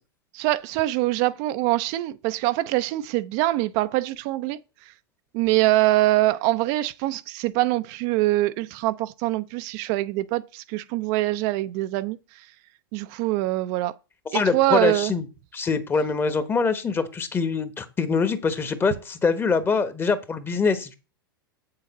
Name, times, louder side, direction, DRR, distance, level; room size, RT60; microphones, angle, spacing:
voice 1, 0.3-4.6 5.3-12.2 12.9-13.9 14.3-15.1, right 17 dB, 45° right, 0.5 m, -24 dB
voice 2, 14.3-15.3 15.5-20.9, left 5 dB, 20° left, 1.1 m, -24 dB
7.9 x 6.7 x 4.2 m
figure-of-eight pair, 95°, 12 cm